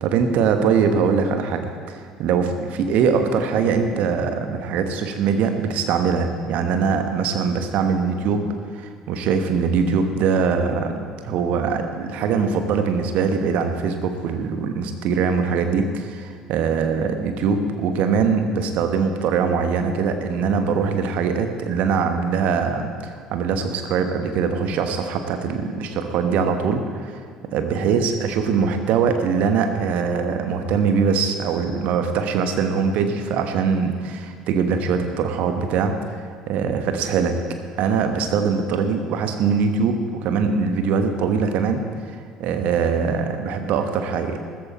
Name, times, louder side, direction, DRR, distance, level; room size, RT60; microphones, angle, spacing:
voice 1, 0.0-8.4 8.8-10.9 11.2-27.2 27.5-35.9 36.5-37.3 37.8-41.8 42.4-44.4, right 6 dB, 55° right, 7 dB, 1.3 m, -22 dB
14.5 x 14.0 x 4.3 m, 2.1 s
figure-of-eight pair, 55°, 3 cm